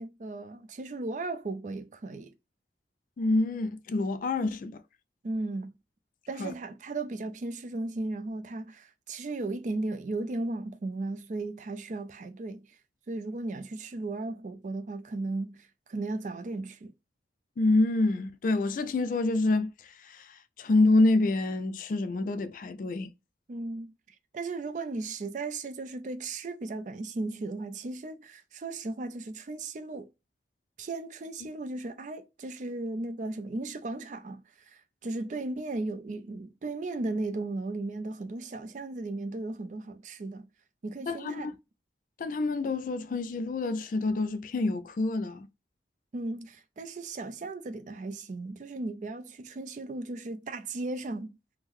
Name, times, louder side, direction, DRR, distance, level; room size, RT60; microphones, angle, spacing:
voice 1, 0.0-2.3 5.2-5.8 6.3-12.8 13.1-16.9 23.5-23.9 24.3-30.1 30.8-40.5 40.8-41.5 46.1-51.4, right 2 dB, 40° right, 0.4 m, -36 dB
voice 2, 3.2-4.8 6.4-6.5 17.6-23.1 41.1-41.5 42.2-45.5, left 2 dB, 45° left, 0.3 m, -27 dB
3.6 x 2.0 x 3.0 m
head